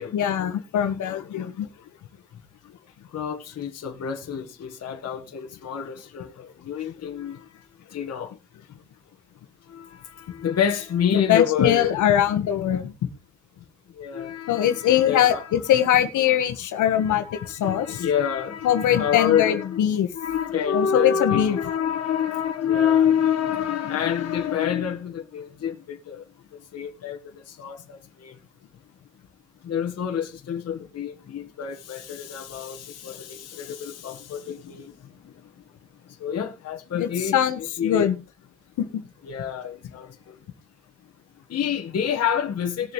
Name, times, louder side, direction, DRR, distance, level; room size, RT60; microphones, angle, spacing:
voice 1, 0.1-1.7 11.1-13.1 14.5-18.0 18.6-20.1 20.7-21.6 37.0-38.1 38.8-39.0, left 10 dB, 80° left, 1.6 m, -22 dB
voice 2, 3.1-7.6 7.9-8.3 9.7-11.9 13.9-15.5 17.0-19.8 20.1-28.4 29.6-35.4 36.1-37.3 37.8-38.1 39.3-40.4 41.5-42.9, left 8 dB, 55° left, 1.7 m, -27 dB
19.5 x 7.0 x 3.3 m
cardioid pair, 90°, 30 cm